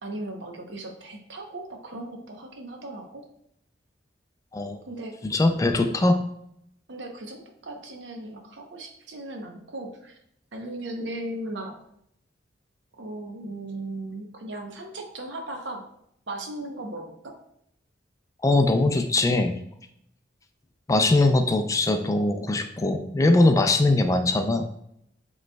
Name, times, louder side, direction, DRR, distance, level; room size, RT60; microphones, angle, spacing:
voice 1, 0.0-3.3 4.9-5.1 6.9-10.2 10.5-11.7 13.0-15.8 16.3-17.4, right 1 dB, 75° right, 3 dB, 0.8 m, -37 dB
voice 2, 5.2-6.2 18.4-19.6 20.9-24.7, left 2 dB, 20° left, 6 dB, 0.3 m, -21 dB
7.5 x 3.1 x 2.2 m, 0.73 s
head